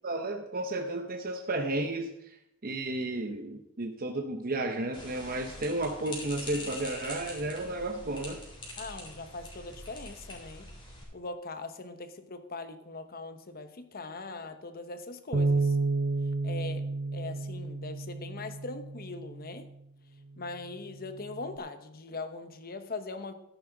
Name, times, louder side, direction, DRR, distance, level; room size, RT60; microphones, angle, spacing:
voice 1, 0.0-2.4 2.6-8.4, right 2 dB, 40° right, 4 dB, 0.9 m, -33 dB
sound 1, 4.9-11.0, left 1 dB, 25° left, 3.9 m, -44 dB
voice 2, 8.8-10.7 11.1-15.8 16.4-16.9 17.1-19.6 20.4-23.3, left 3 dB, 45° left, 9 dB, 1.0 m, -41 dB
Bass guitar, 15.3-19.7 20.4-21.6, right 3 dB, 90° right, 0.9 m, -32 dB
13.0 x 10.5 x 4.0 m, 0.81 s
head